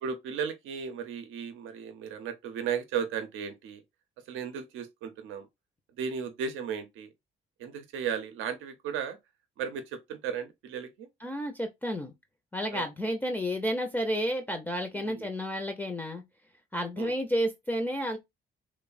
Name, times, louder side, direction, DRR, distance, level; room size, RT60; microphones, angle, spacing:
voice 1, 0.0-3.8 4.3-5.5 6.0-7.1 7.6-9.2 9.6-11.1 12.7-12.8 14.9-15.3 17.0-17.1, right 7 dB, 90° right, 0.5 m, -35 dB
voice 2, 11.2-12.1 12.5-16.2 16.7-18.2, equal, 10° left, 0.4 m, -31 dB
2.9 x 2.0 x 2.4 m
cardioid pair, 90°, 20 cm